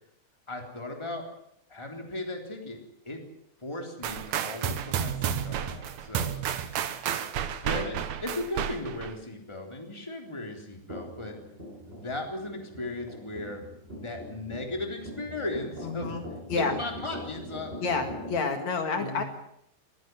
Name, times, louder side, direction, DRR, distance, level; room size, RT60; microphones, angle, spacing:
voice 1, 0.5-1.3 1.7-3.2 3.6-6.3 7.1-7.2 7.6-11.4 11.9-13.6 13.9-16.1 16.5-17.7 19.0-19.2, left 1 dB, 10° left, 3 dB, 3.5 m, -37 dB
sound 1, 4.0-9.2, right 9 dB, 65° right, 2.4 m, -31 dB
sound 2, 10.9-18.4, equal, 15° right, 7.5 m, -42 dB
voice 2, 15.8-16.2 16.5-16.8 17.8-19.2, left 4 dB, 60° left, 5 dB, 3.2 m, -29 dB
21.0 x 16.0 x 9.3 m, 0.74 s
omnidirectional pair, 3.6 m